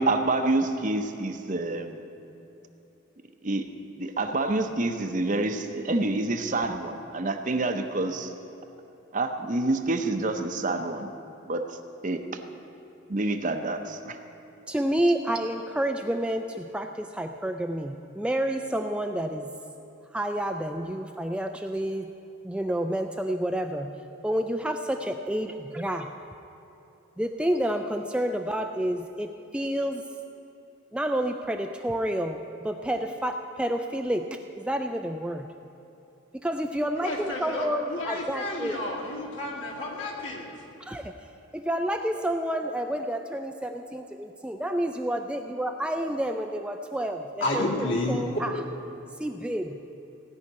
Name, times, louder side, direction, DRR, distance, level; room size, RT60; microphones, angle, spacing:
voice 1, 0.0-2.0 3.4-3.6 4.0-8.3 9.1-11.1 11.5-11.8 12.0-12.2 13.1-14.2, right 2 dB, 40° right, 6 dB, 0.7 m, -27 dB
voice 2, 14.7-19.5 20.1-22.1 22.4-25.5 25.7-26.1 27.2-30.0 30.9-35.5 36.3-38.8 40.9-41.0 41.5-48.6 49.2-49.8, right 1 dB, 5° right, 5 dB, 0.3 m, -29 dB
voice 3, 37.0-40.4 47.4-48.2, left 2 dB, 65° left, -3 dB, 2.5 m, -30 dB
16.5 x 5.7 x 9.6 m, 2.9 s
head